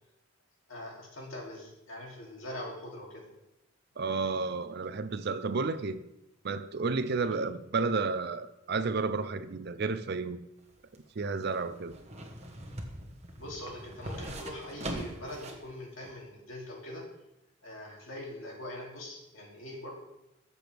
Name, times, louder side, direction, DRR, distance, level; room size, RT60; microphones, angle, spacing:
voice 1, 0.7-3.3 7.2-7.3 13.4-17.0 17.6-19.9, left 1 dB, 75° left, -2 dB, 2.8 m, -42 dB
voice 2, 4.0-6.0 6.4-10.4 10.9-11.9, right 4 dB, 50° right, 12 dB, 0.5 m, -31 dB
sound 1, 10.6-15.7 16.0-16.1, right 1 dB, 30° right, 1.3 m, -42 dB
13.5 x 6.9 x 3.4 m, 0.89 s
head